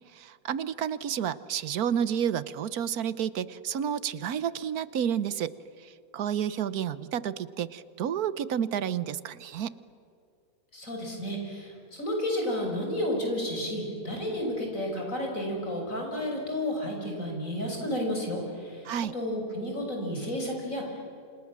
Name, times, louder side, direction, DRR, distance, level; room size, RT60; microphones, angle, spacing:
voice 1, 0.1-5.5 5.8-9.7 18.8-19.1, right 9 dB, 80° right, 16 dB, 1.4 m, -30 dB
voice 2, 10.7-21.0, left 1 dB, 60° left, 1 dB, 6.7 m, -32 dB
29.5 x 27.0 x 7.4 m, 2.5 s
omnidirectional pair, 1.6 m